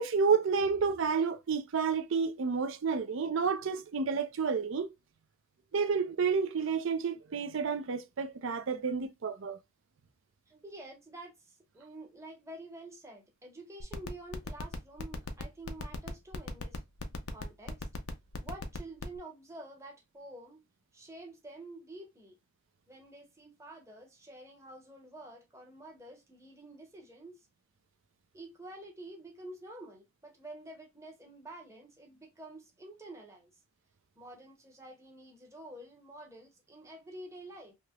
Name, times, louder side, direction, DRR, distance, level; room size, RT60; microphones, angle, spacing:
voice 1, 0.0-4.9 5.7-9.6, right 5 dB, 60° right, 0.5 m, -30 dB
voice 2, 10.5-16.8 17.3-17.9 18.4-20.6 20.9-22.4 22.9-27.4 28.3-33.5 34.1-37.8, right 1 dB, 15° right, 1.0 m, -49 dB
sound 1, 13.8-19.2, left 4 dB, 90° left, 0.7 m, -38 dB
3.2 x 2.9 x 2.2 m
head